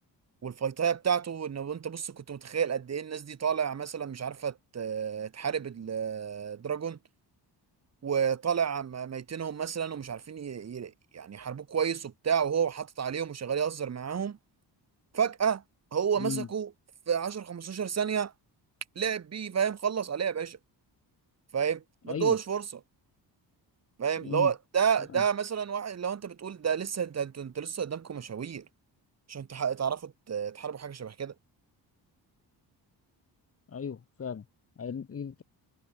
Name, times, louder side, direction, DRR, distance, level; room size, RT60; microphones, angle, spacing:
voice 1, 0.4-7.0 8.0-14.4 15.1-15.6 15.9-16.7 17.1-18.3 19.0-20.6 21.5-22.8 24.0-28.7 29.3-31.3, right 7 dB, 40° right, 3.6 m, -30 dB
voice 2, 16.2-16.5 22.1-22.3 24.2-24.5 25.1-25.2 33.7-34.4 34.8-35.4, left 6 dB, 35° left, 3.8 m, -36 dB
wide cardioid pair, 170°, 42 cm